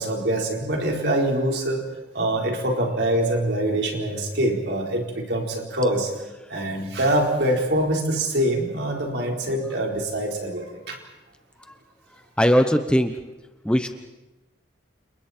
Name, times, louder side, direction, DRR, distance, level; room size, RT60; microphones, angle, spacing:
voice 1, 0.0-1.8 2.1-6.1 6.5-11.0, right 1 dB, 65° right, 1 dB, 4.4 m, -24 dB
voice 2, 12.4-13.1 13.6-13.9, equal, 5° left, 7 dB, 0.9 m, -19 dB
30.0 x 28.5 x 4.5 m, 1.0 s
head